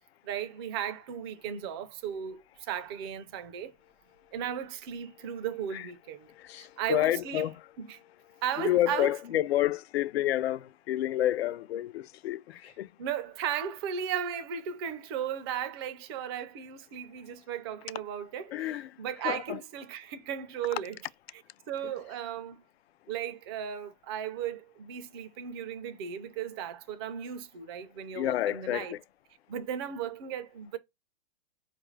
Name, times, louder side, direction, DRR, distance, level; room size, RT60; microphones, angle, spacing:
voice 1, 0.2-3.7 4.3-6.3 6.6-7.5 7.8-8.0 8.4-9.1 13.0-18.7 19.0-20.9 21.7-22.6 23.1-28.9 29.5-30.8, right 9 dB, 25° right, 0.4 m, -36 dB
voice 2, 6.2-7.7 8.3-12.9 18.5-19.6 21.8-21.9 28.1-29.0, left 13 dB, 75° left, 0.5 m, -30 dB
4.5 x 2.5 x 3.0 m
hypercardioid pair, 155°, 32 cm